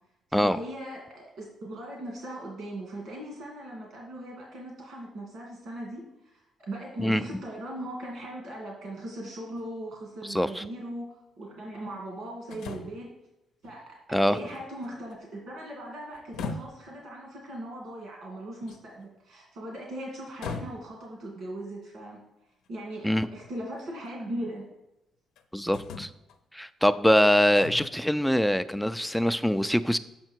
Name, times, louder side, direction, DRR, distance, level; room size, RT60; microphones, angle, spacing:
voice 1, 0.3-13.1 13.6-22.2 22.7-24.6, right 1 dB, 75° right, -1 dB, 2.2 m, -39 dB
sound 1, 9.6-9.7 12.5-13.1 13.6-13.8 14.2-15.1 16.1-16.9 18.7-19.1 20.4-21.1 22.7-22.8 23.4-24.1 25.3-25.4 25.7-26.4 27.5-27.9, left 4 dB, 85° left, 0.7 m, -39 dB
voice 2, 10.3-10.6 14.1-14.4 23.0-23.3 25.5-26.1 26.5-30.0, equal, ahead, 13 dB, 0.4 m, -23 dB
7.6 x 5.8 x 4.6 m, 0.92 s
cardioid pair, 90°, 0 cm